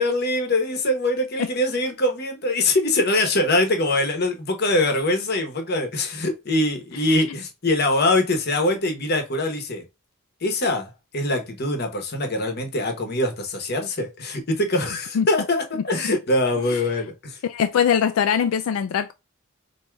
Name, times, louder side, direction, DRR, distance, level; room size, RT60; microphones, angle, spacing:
voice 1, 0.0-9.8 10.4-17.4, left 2 dB, 50° left, 1.0 m, -23 dB
voice 2, 17.4-19.1, left 8 dB, 85° left, 0.4 m, -22 dB
4.5 x 2.8 x 2.3 m
head